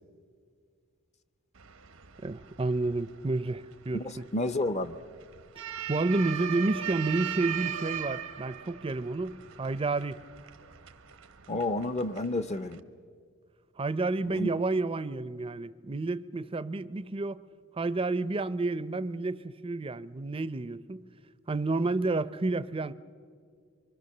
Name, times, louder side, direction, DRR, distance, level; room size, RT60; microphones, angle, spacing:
sound 1, 1.6-12.8, right 9 dB, 85° right, 1.1 m, -40 dB
voice 1, 2.2-4.3 5.6-10.2 13.8-17.4 17.8-21.1 21.5-22.9, right 3 dB, 25° right, 0.5 m, -30 dB
voice 2, 3.9-5.0 11.5-12.8 14.3-14.5, left 2 dB, 35° left, 0.6 m, -30 dB
25.0 x 23.5 x 6.7 m
head